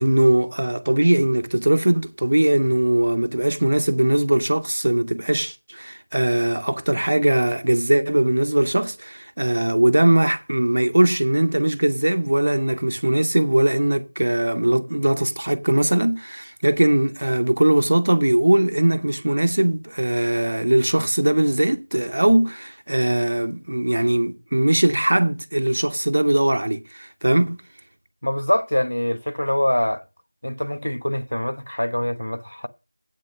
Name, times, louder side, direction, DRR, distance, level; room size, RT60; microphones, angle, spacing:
voice 1, 0.0-27.6, right 1 dB, 30° right, 0.7 m, -20 dB
voice 2, 28.2-30.0 30.4-32.7, left 1 dB, 75° left, 1.0 m, -24 dB
8.3 x 6.6 x 6.3 m
figure-of-eight pair, 180°, 0 cm